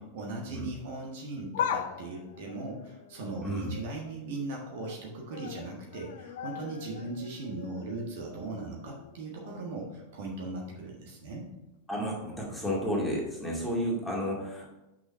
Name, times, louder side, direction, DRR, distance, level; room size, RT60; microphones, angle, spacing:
voice 1, 0.1-11.5, right 2 dB, 50° right, -1 dB, 1.5 m, -39 dB
sound 1, 1.5-4.2 4.5-5.0 5.3-9.2 9.6-9.7 10.7-10.8, left 8 dB, 55° left, 0.5 m, -39 dB
voice 2, 3.4-3.7 11.9-14.7, equal, ahead, -5 dB, 2.2 m, -32 dB
6.2 x 5.8 x 4.4 m, 0.95 s
figure-of-eight pair, 90°, 0 cm